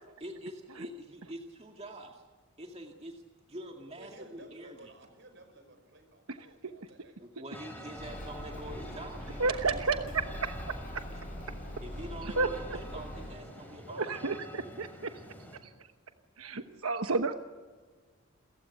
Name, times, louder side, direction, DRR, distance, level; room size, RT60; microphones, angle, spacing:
voice 1, 0.2-2.2 2.6-3.2 3.5-4.9 7.2-10.0 11.8-14.3, right 1 dB, 30° right, 2 dB, 2.2 m, -45 dB
voice 2, 3.9-7.3, right 2 dB, 55° right, 7 dB, 5.2 m, -55 dB
voice 3, 6.3-6.7 9.4-11.0 12.2-12.6 13.9-15.2 15.6-15.9 16.4-17.3, right 4 dB, 90° right, 7 dB, 1.1 m, -32 dB
sound 1, 7.5-15.6, equal, 10° left, 4.1 m, -47 dB
Bird, 7.9-13.4, equal, 40° left, 5.4 m, -42 dB
28.5 x 15.5 x 9.9 m, 1.5 s
head